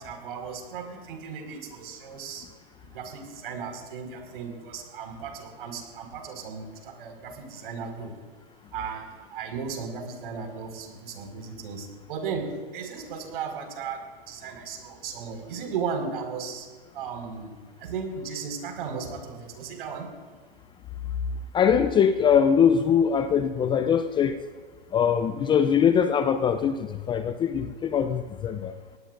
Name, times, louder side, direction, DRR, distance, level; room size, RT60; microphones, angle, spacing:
voice 1, 0.0-2.5 2.9-8.1 8.7-16.7 16.9-17.5 17.8-20.1, right 5 dB, 65° right, 3 dB, 5.1 m, -36 dB
voice 2, 21.5-24.4 24.9-28.7, left 7 dB, 15° left, 11 dB, 0.5 m, -22 dB
24.5 x 19.0 x 2.6 m, 1.5 s
hypercardioid pair, 120°, 31 cm